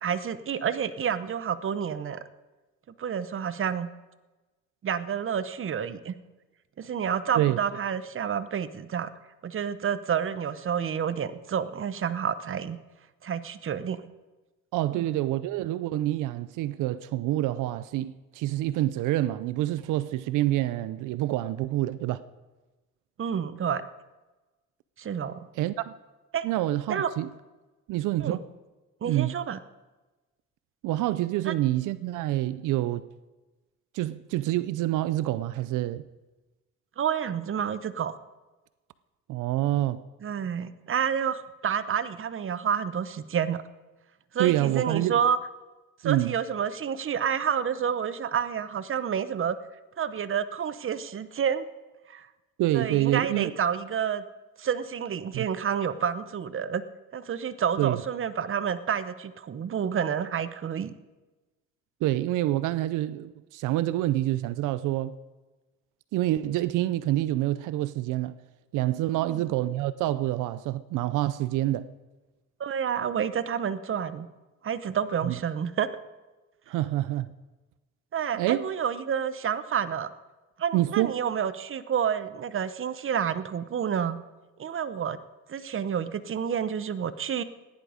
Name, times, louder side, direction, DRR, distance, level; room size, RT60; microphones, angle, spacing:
voice 1, 0.0-2.2 3.0-3.9 4.8-6.1 6.8-9.1 9.4-12.8 13.2-14.0 14.9-15.1 23.2-23.8 25.0-25.5 26.3-26.5 26.9-27.1 28.2-28.4 29.0-29.6 31.4-31.5 37.0-38.1 40.2-43.6 44.3-45.4 46.0-49.6 50.0-51.7 52.1-52.3 52.7-54.2 54.6-56.8 57.1-60.9 69.2-69.4 72.6-74.3 74.6-75.9 78.1-80.1 80.6-84.2 84.6-85.2 85.5-87.4, right 8 dB, 45° right, 0.9 m, -29 dB
voice 2, 14.7-22.2 25.6-26.0 26.4-27.3 27.9-28.4 29.0-29.3 30.8-33.0 33.9-36.1 39.3-40.0 44.4-45.2 46.0-46.4 52.6-53.5 55.3-55.5 57.8-58.0 62.0-65.1 66.1-68.3 68.7-71.9 75.2-75.4 76.7-77.3 78.3-78.6 80.7-81.1, right 15 dB, 90° right, 0.5 m, -27 dB
15.5 x 10.5 x 5.0 m
cardioid pair, 90°, 30 cm